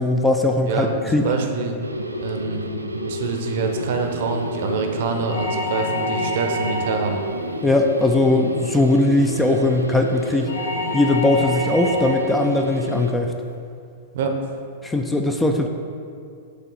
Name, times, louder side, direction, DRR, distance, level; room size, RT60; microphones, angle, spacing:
voice 1, 0.0-1.3 7.6-10.5 10.9-13.3 14.8-15.7, left 2 dB, 10° left, 4 dB, 0.4 m, -19 dB
voice 2, 1.2-1.8 2.2-2.6 3.0-7.2 14.1-14.4, right 4 dB, 55° right, 4 dB, 0.6 m, -25 dB
sound 1, 1.8-13.1, equal, 90° right, 0.3 m, -30 dB
sound 2, 5.3-7.2 10.5-12.3, left 1 dB, 60° left, 1.0 m, -28 dB
7.4 x 3.2 x 4.0 m, 2.3 s
figure-of-eight pair, 100°, 0 cm